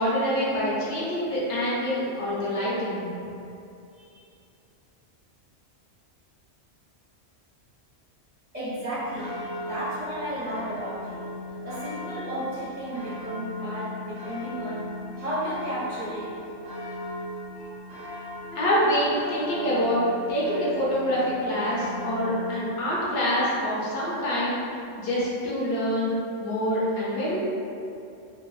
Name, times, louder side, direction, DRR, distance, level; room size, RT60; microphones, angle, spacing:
voice 1, 0.0-3.1 18.5-20.0 20.3-24.6 25.0-26.1 26.4-27.4, equal, 65° left, -7 dB, 0.8 m, -26 dB
voice 2, 8.5-11.2 11.6-16.3 17.5-17.8 18.1-18.3, right 1 dB, 45° right, -12 dB, 0.6 m, -33 dB
sound 1, 9.0-22.6, left 1 dB, 90° right, 1.1 m, -38 dB
2.6 x 2.3 x 2.3 m, 2.6 s
omnidirectional pair, 1.2 m